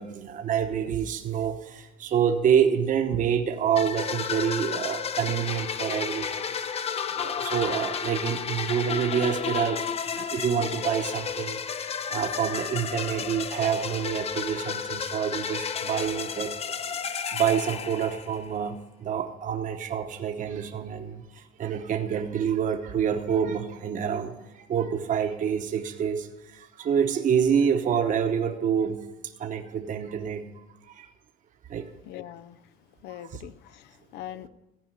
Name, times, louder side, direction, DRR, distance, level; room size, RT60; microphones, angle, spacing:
voice 1, 0.0-6.5 7.1-29.0 29.4-30.5 30.9-31.1 31.7-31.9 33.1-33.4, right 8 dB, 50° right, 5 dB, 1.0 m, -27 dB
sound 1, 3.8-18.5, left 7 dB, 35° left, 0.6 m, -32 dB
voice 2, 32.0-32.6 33.0-34.5, left 12 dB, 80° left, 16 dB, 0.6 m, -42 dB
14.5 x 4.9 x 8.9 m, 1.0 s
cardioid pair, 110°, 17 cm